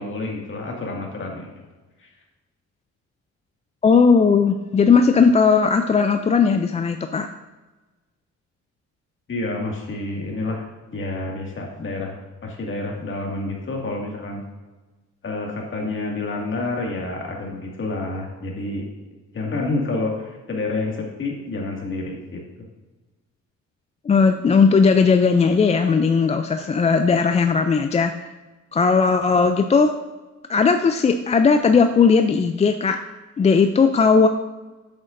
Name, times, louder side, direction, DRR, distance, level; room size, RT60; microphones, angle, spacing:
voice 1, 0.0-1.5 2.0-2.1 9.3-10.7 10.9-12.1 12.4-14.4 15.2-18.8 19.3-22.4, left 2 dB, 40° left, -1 dB, 2.0 m, -28 dB
voice 2, 3.8-7.3 24.1-28.3 28.7-29.9 30.5-33.0 33.4-34.3, left 5 dB, 25° left, 8 dB, 0.3 m, -17 dB
7.8 x 7.6 x 2.6 m, 1.2 s
cardioid pair, 90°, 30 cm